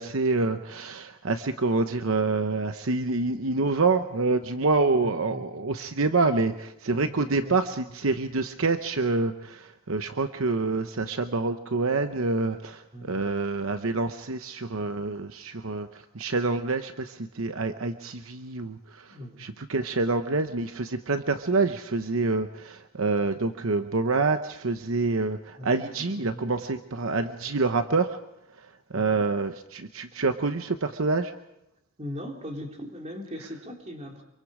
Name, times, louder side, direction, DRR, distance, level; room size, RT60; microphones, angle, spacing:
voice 1, 0.0-28.2 28.6-31.3, right 3 dB, 75° right, 8 dB, 0.9 m, -27 dB
voice 2, 5.0-5.4 7.0-7.6 12.9-13.1 19.0-19.5 25.6-26.6 28.9-29.1 32.0-34.2, left 1 dB, 30° right, 2 dB, 3.2 m, -40 dB
26.5 x 24.0 x 5.0 m, 0.85 s
head